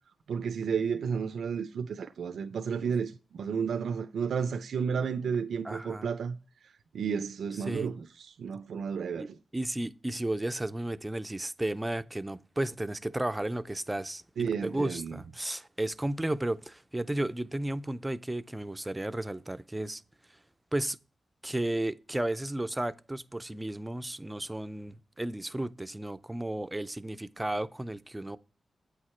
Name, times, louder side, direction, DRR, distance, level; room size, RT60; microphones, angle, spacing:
voice 1, 0.3-6.4 6.9-9.4 14.4-15.2, right 6 dB, 85° right, 0.5 m, -32 dB
voice 2, 5.6-6.1 7.7-7.9 9.2-9.3 9.5-20.0 20.7-21.0 21.4-28.4, right 1 dB, 10° right, 0.4 m, -33 dB
8.6 x 4.8 x 4.3 m
wide cardioid pair, 145°, 0 cm